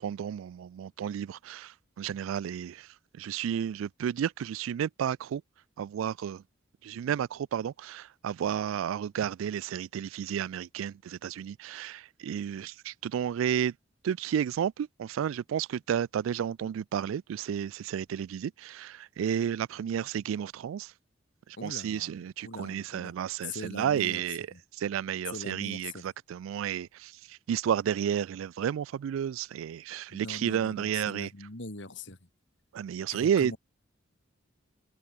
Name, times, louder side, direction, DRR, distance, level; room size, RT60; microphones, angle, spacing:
voice 1, 0.0-5.4 5.8-6.4 6.8-13.7 14.0-20.9 21.5-24.5 24.7-31.3 32.7-33.6, right 9 dB, 85° right, 0.3 m, -32 dB
voice 2, 21.6-23.1 23.4-24.2 24.5-24.6 25.3-26.0 30.1-32.2 33.1-33.6, left 3 dB, 65° left, 2.9 m, -42 dB
head